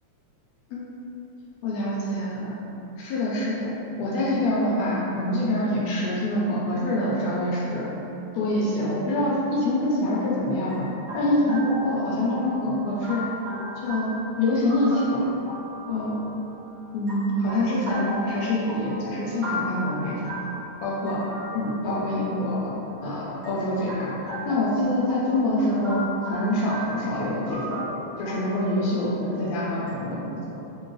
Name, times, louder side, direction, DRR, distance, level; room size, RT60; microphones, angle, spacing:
voice 1, 1.6-2.6 3.0-3.7 4.0-7.9 8.3-10.9 11.1-13.2 13.8-14.1 14.4-15.3 15.9-16.2 16.9-20.2 20.8-21.2 21.5-22.7 23.0-24.1 24.4-26.0 26.3-27.8 28.2-30.6, left 1 dB, 80° left, -5 dB, 1.7 m, -25 dB
sound 1, 10.7-29.9, equal, 75° right, 0.9 m, -37 dB
4.4 x 2.8 x 3.1 m, 3.0 s
omnidirectional pair, 3.5 m